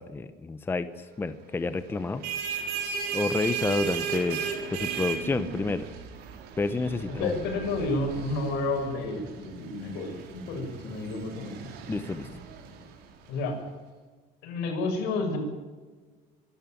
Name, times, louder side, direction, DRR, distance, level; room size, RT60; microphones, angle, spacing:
voice 1, 0.0-2.2 3.1-4.4 4.7-5.9 6.6-7.3 11.9-12.3, left 3 dB, 15° left, 11 dB, 0.8 m, -29 dB
sound 1, 2.0-13.3, right 7 dB, 70° right, 4.1 m, -36 dB
voice 2, 7.1-11.8 13.3-13.6 14.4-15.4, left 2 dB, 75° left, 3 dB, 7.0 m, -31 dB
24.5 x 13.0 x 9.3 m, 1.4 s
cardioid pair, 160°, 17 cm